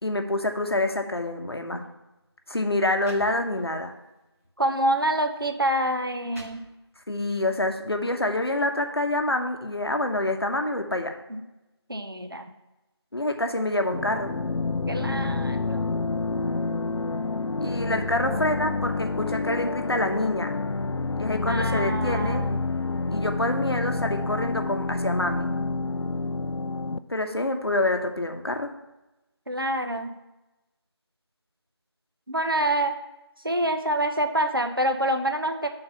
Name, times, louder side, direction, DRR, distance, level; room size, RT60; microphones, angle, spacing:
voice 1, 0.0-1.8 2.5-3.9 7.1-11.1 13.1-14.3 16.1-16.8 17.6-20.5 21.2-22.4 23.1-25.5 27.1-28.7, left 1 dB, 65° left, 5 dB, 0.8 m, -27 dB
sound 1, 1.8-1.9 2.6-2.7 3.0-3.9 4.4-4.6 5.4-5.5 6.0-7.1, equal, 35° right, 1.3 m, -48 dB
voice 2, 4.6-6.6 11.3-11.4 11.9-12.5 14.9-16.0 21.5-22.6 29.5-30.1 32.3-32.9 33.4-35.7, right 1 dB, 55° right, 5 dB, 0.7 m, -26 dB
sound 2, 13.9-27.0, left 3 dB, 85° left, 0.4 m, -28 dB
7.3 x 3.9 x 5.5 m, 1.0 s
figure-of-eight pair, 180°, 14 cm